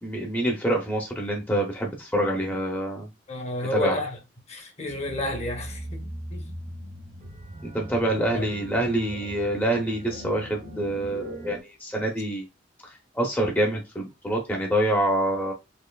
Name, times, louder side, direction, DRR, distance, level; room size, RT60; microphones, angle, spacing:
voice 1, 0.0-3.1 3.7-4.0 7.6-12.5 13.1-15.5, right 1 dB, 10° left, 0.6 m, -26 dB
voice 2, 3.3-4.2 4.5-6.5 8.4-8.5, left 1 dB, 35° left, 0.9 m, -31 dB
sound 1, 4.8-11.6, equal, 40° right, 0.6 m, -40 dB
4.3 x 2.9 x 2.3 m
head